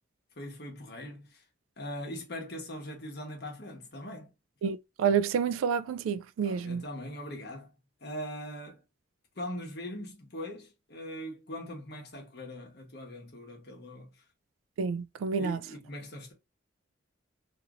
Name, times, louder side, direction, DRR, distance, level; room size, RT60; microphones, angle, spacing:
voice 1, 0.3-1.4 1.8-4.3 6.4-7.7 8.0-8.8 9.3-14.2 15.3-16.3, equal, 50° left, 1.1 m, -41 dB
voice 2, 4.6-6.8 14.8-15.6, right 6 dB, 85° right, 0.3 m, -29 dB
2.9 x 2.5 x 2.9 m
head